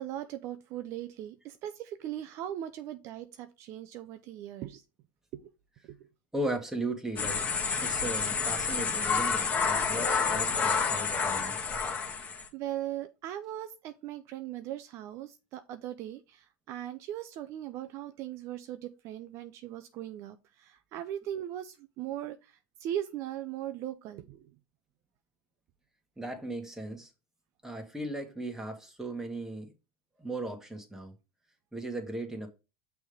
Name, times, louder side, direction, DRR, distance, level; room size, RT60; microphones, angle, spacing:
voice 1, 0.0-4.8 5.3-5.5 5.9-6.0 12.1-12.3 12.5-24.4, right 12 dB, 55° right, 0.6 m, -39 dB
voice 2, 6.3-7.5 7.8-11.6 26.2-27.1 27.6-29.7 30.2-31.1 31.7-32.5, right 1 dB, 10° right, 1.8 m, -37 dB
sound 1, 7.2-12.5, left 5 dB, 25° left, 1.5 m, -29 dB
6.2 x 3.5 x 5.5 m
supercardioid pair, 100°, 6 cm